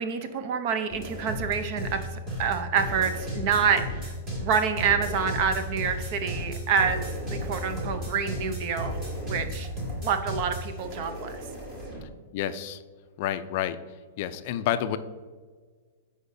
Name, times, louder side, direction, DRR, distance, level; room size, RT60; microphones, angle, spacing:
voice 1, 0.0-4.1 4.4-9.0 9.3-9.7 10.0-11.3, right 6 dB, 45° right, 9 dB, 0.6 m, -27 dB
sound 1, 0.9-12.0, equal, 25° right, 1.9 m, -34 dB
voice 2, 12.0-12.8 13.2-13.8 14.2-15.0, left 11 dB, 45° left, 11 dB, 0.4 m, -29 dB
8.1 x 5.0 x 2.6 m, 1.5 s
hypercardioid pair, 155°, 0 cm